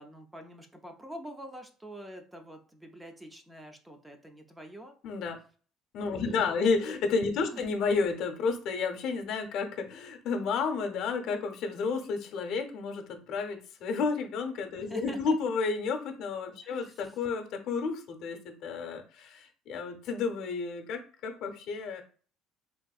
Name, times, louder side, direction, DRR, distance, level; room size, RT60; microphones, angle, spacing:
voice 1, 0.0-4.9 6.1-6.9 7.5-7.6 14.9-15.4 16.6-17.1, equal, 10° right, 5 dB, 0.4 m, -46 dB
voice 2, 5.0-5.4 5.9-22.0, left 4 dB, 60° left, 4 dB, 0.6 m, -31 dB
3.5 x 2.5 x 2.3 m, 0.41 s
cardioid pair, 150°, 0 cm